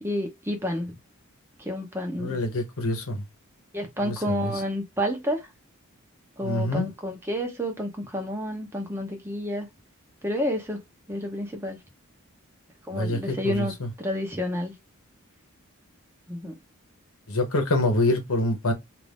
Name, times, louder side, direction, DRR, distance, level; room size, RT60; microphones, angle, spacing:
voice 1, 0.0-0.9 1.6-2.4 3.7-5.5 6.4-9.7 10.2-10.8 11.1-11.8 12.9-14.7 16.3-16.5, equal, 10° right, 0.8 m, -30 dB
voice 2, 2.2-3.2 4.0-4.5 6.4-6.9 12.9-13.9 17.3-18.7, left 1 dB, 70° left, 1.0 m, -26 dB
2.5 x 2.5 x 3.3 m
head